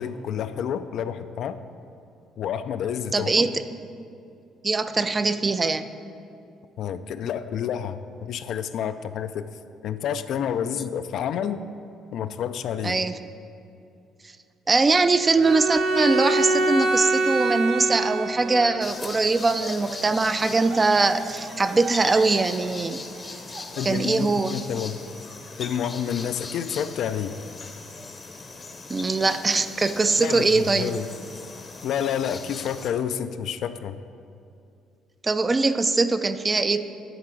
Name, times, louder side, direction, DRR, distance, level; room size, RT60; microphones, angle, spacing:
voice 1, 0.0-1.6 2.4-3.6 6.8-9.5 9.8-11.6 12.1-13.0 23.8-25.0 25.6-27.4 30.2-31.1 31.8-34.0, left 8 dB, 70° left, 11 dB, 0.3 m, -29 dB
voice 2, 3.1-3.6 4.6-5.9 12.8-13.2 14.7-23.0 23.9-24.6 28.9-30.9 35.2-36.8, right 3 dB, 25° right, 11 dB, 0.4 m, -22 dB
Bowed string instrument, 15.4-18.9, right 2 dB, 80° right, 0.7 m, -24 dB
Laughter, 17.7-17.9 18.2-19.0 19.2-24.3, right 3 dB, 55° right, 1.1 m, -41 dB
sound 1, 18.8-32.9, left 3 dB, 30° left, 0.7 m, -39 dB
10.5 x 3.7 x 6.1 m, 2.5 s
cardioid pair, 85°, 0 cm